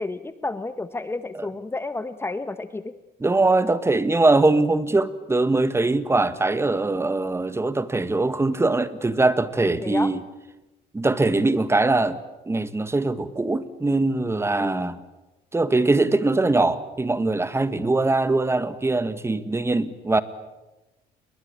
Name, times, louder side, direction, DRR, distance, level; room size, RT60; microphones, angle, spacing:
voice 1, 0.0-2.9 9.8-10.1 14.6-15.0, left 2 dB, 15° left, 1.1 m, -31 dB
voice 2, 3.2-10.2 10.9-12.2 12.5-15.0 15.5-20.2, right 2 dB, 15° right, 1.7 m, -22 dB
29.0 x 22.5 x 8.7 m
cardioid pair, 110°, 17 cm